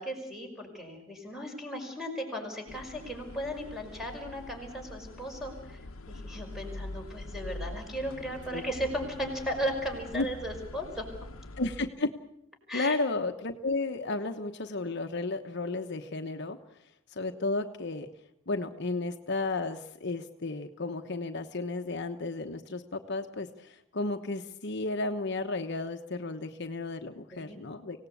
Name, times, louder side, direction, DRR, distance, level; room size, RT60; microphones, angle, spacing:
voice 1, 0.0-5.8 6.1-11.1 12.7-13.0 27.3-27.6, equal, ahead, 2 dB, 5.4 m, -36 dB
sound 1, 2.7-11.9, left 2 dB, 80° left, 1.0 m, -44 dB
voice 2, 11.6-12.1 12.7-16.6 17.1-18.1 18.5-28.1, left 3 dB, 55° left, 6 dB, 1.1 m, -33 dB
25.5 x 17.5 x 8.5 m, 0.77 s
head